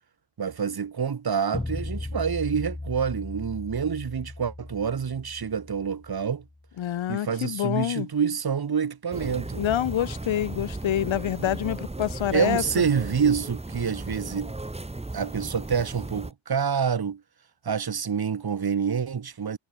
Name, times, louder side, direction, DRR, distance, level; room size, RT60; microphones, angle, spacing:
voice 1, 0.4-6.4 7.1-9.6 12.3-14.5 15.1-17.2 17.6-19.6, right 7 dB, 50° right, 5.4 m, -27 dB
sound 1, 1.5-6.6, left 2 dB, 10° left, 4.6 m, -37 dB
voice 2, 6.8-8.1 9.6-12.6, left 11 dB, 85° left, 1.2 m, -27 dB
sound 2, 9.1-16.3, right 2 dB, 15° right, 3.1 m, -36 dB
wide cardioid pair, 165°, 46 cm